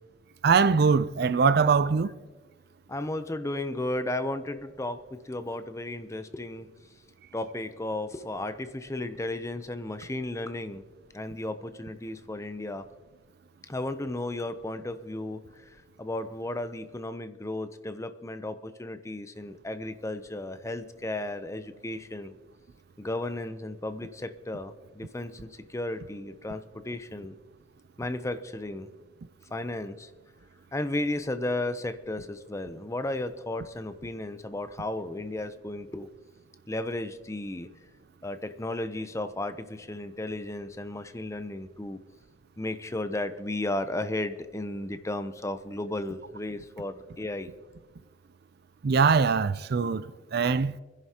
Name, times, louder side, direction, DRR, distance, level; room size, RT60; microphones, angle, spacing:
voice 1, 0.4-2.1 48.8-50.0 50.3-50.7, right 5 dB, 55° right, 0.4 m, -22 dB
voice 2, 2.9-6.7 7.3-10.8 11.1-12.9 13.7-22.4 23.0-27.4 28.0-28.9 29.5-30.1 30.7-36.1 36.7-37.7 38.2-42.0 42.6-47.5, left 1 dB, 15° left, 0.6 m, -34 dB
26.0 x 11.0 x 2.9 m
head